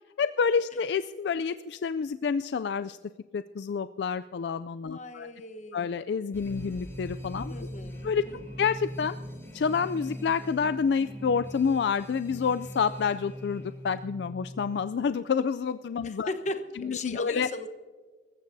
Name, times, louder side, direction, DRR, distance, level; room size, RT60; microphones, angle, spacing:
voice 1, 0.2-3.0 3.3-5.3 5.7-7.5 8.0-9.2 9.5-16.3 16.8-17.5, left 6 dB, 65° left, 13 dB, 0.3 m, -28 dB
voice 2, 4.9-5.9 7.5-8.4 16.0-17.7, left 2 dB, 40° left, 8 dB, 1.0 m, -37 dB
Alarm, 6.3-14.0, equal, 15° left, 2.9 m, -52 dB
Singing, 6.4-15.3, equal, 40° right, 2.5 m, -42 dB
26.0 x 14.5 x 2.7 m, 1.5 s
head